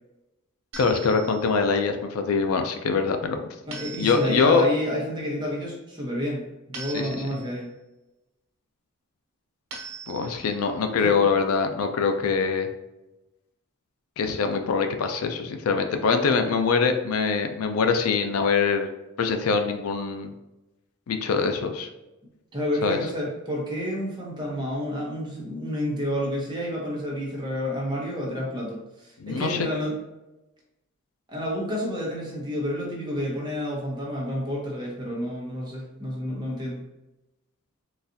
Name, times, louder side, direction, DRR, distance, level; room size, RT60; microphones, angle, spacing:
sound 1, 0.7-1.6 3.7-4.6 6.7-7.6 9.7-10.6, right 4 dB, 75° right, 1.1 m, -41 dB
voice 1, 0.8-3.5 4.0-4.6 6.9-7.5 10.1-12.7 14.2-18.9 19.2-20.3 21.1-21.9 22.8-23.0 29.2-29.7, left 5 dB, 80° left, 6 dB, 0.4 m, -24 dB
voice 2, 3.7-7.7 11.0-11.2 22.5-28.8 29.3-29.9 31.3-36.8, equal, 20° right, -3 dB, 0.9 m, -30 dB
3.9 x 2.4 x 2.6 m, 0.98 s
head